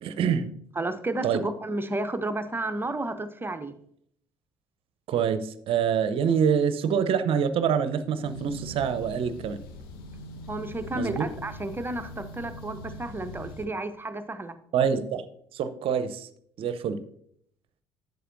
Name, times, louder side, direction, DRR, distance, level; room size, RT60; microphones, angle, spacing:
voice 1, 0.0-0.5 1.2-1.4 5.1-9.6 10.9-11.3 14.7-15.3 15.5-16.3 16.6-17.0, right 7 dB, 50° right, 12 dB, 0.7 m, -26 dB
voice 2, 0.8-3.7 10.5-14.5, right 2 dB, 15° right, 9 dB, 0.8 m, -32 dB
sound 1, 8.2-13.7, left 1 dB, 70° left, 0.8 m, -42 dB
11.0 x 8.1 x 2.6 m, 0.69 s
figure-of-eight pair, 55°, 12 cm